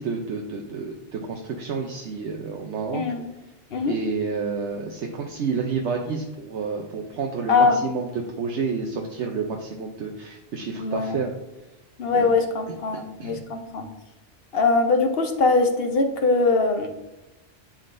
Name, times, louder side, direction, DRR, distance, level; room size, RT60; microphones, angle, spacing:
voice 1, 0.0-3.0 3.9-11.3 12.1-12.3 13.2-13.4, right 5 dB, 75° right, 1 dB, 1.0 m, -29 dB
voice 2, 2.9-3.3 3.7-3.9 7.5-7.8 10.8-11.2 12.0-13.9 14.5-16.9, left 3 dB, 60° left, 5 dB, 1.0 m, -22 dB
11.5 x 3.8 x 2.6 m, 1.0 s
omnidirectional pair, 1.2 m